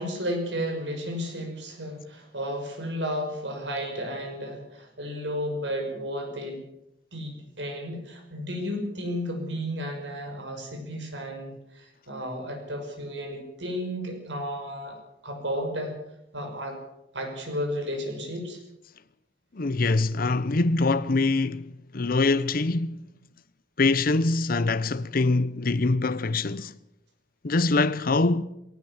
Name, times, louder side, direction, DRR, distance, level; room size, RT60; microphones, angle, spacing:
voice 1, 0.0-6.6 7.1-15.0 15.2-16.0 16.3-16.8 17.1-18.6, equal, 85° right, 6.1 m, -33 dB
voice 2, 19.5-23.0 23.8-26.7 27.4-28.4, left 3 dB, 55° left, 0.8 m, -24 dB
20.0 x 18.5 x 7.3 m
head